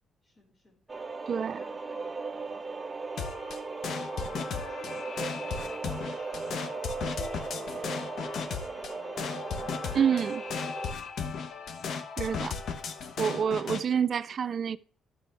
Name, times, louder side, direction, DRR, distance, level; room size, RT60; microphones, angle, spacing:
voice 1, 0.2-3.1 4.1-10.6, left 2 dB, 35° left, 4.3 m, -59 dB
sound 1, 0.9-10.9, right 4 dB, 25° right, 0.8 m, -37 dB
voice 2, 1.3-1.6 9.9-10.4 12.2-12.6 13.2-14.8, right 7 dB, 50° right, 0.4 m, -27 dB
sound 2, 3.2-13.8, left 6 dB, 65° left, 1.0 m, -36 dB
11.5 x 6.8 x 3.3 m
cardioid pair, 90°, 0 cm